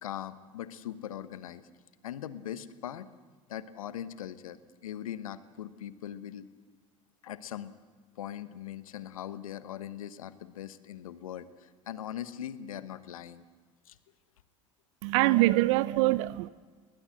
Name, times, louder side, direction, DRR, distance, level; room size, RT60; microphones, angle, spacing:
voice 1, 0.0-1.7 2.0-3.1 3.5-6.5 7.2-7.7 8.2-13.4 13.8-14.0, left 10 dB, 80° left, 15 dB, 1.1 m, -40 dB
voice 2, 15.0-16.5, right 18 dB, 65° right, 19 dB, 0.6 m, -24 dB
20.5 x 20.0 x 7.7 m, 1.5 s
hypercardioid pair, 75°, 17 cm